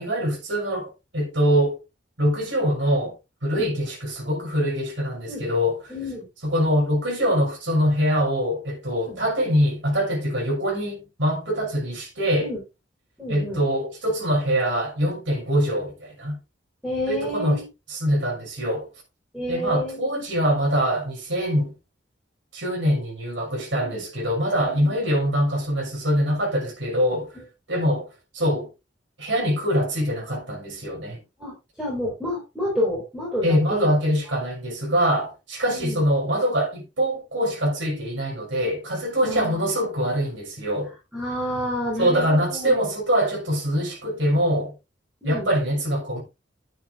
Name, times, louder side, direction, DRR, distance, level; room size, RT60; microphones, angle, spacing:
voice 1, 0.0-1.8 2.2-3.2 3.4-5.9 6.4-12.5 13.3-16.4 17.1-18.9 19.5-21.7 22.5-27.3 27.7-28.1 28.3-28.7 29.2-31.2 33.4-40.9 42.0-44.7 45.2-46.2, equal, 80° right, 6.3 m, -24 dB
voice 2, 5.9-6.3 9.0-9.2 12.4-12.6 13.2-13.6 16.8-17.6 19.3-20.1 23.8-24.0 24.6-25.0 27.3-27.4 31.4-31.5 31.8-33.9 35.7-36.0 39.2-39.7 41.1-42.8 45.2-45.5, left 1 dB, 5° right, 4.7 m, -29 dB
11.5 x 9.2 x 2.7 m
head